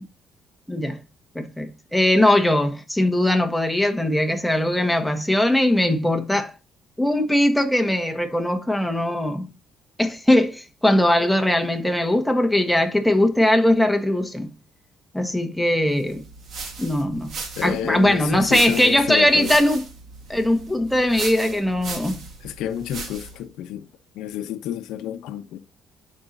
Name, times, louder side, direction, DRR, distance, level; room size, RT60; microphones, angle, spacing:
voice 1, 0.7-1.0 1.3-6.5 7.0-9.5 10.0-14.5 15.1-16.2 16.8-17.4 17.6-19.8 20.3-22.3, left 1 dB, 5° left, 1.4 m, -20 dB
sound 1, 16.1-23.4, right 4 dB, 60° right, 2.2 m, -36 dB
voice 2, 17.6-19.5 22.4-23.9 24.1-25.6, left 10 dB, 85° left, 0.9 m, -29 dB
11.5 x 4.3 x 2.6 m
cardioid pair, 90°, 0 cm